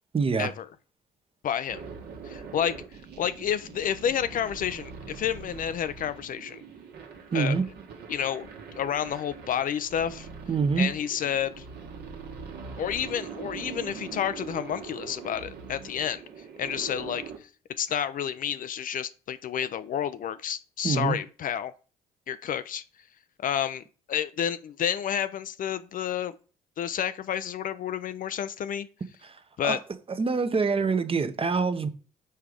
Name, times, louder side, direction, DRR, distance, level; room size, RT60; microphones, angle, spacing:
voice 1, 0.1-0.5 7.3-7.6 10.5-10.9 20.8-21.2 29.2-29.3 29.6-29.8 30.2-31.9, right 5 dB, 30° right, 0.9 m, -25 dB
voice 2, 1.4-1.8 2.2-2.7 3.2-6.6 7.3-7.6 8.1-8.5 8.7-10.3 10.8-11.6 12.8-16.2 16.6-17.2 17.8-21.7 22.3-22.8 23.4-23.8 24.1-26.3 26.8-28.9 29.6-29.8, left 9 dB, 50° left, 0.5 m, -30 dB
sound 1, 1.7-17.4, right 6 dB, 60° right, 1.3 m, -42 dB
5.6 x 4.6 x 5.0 m
hypercardioid pair, 50°, 18 cm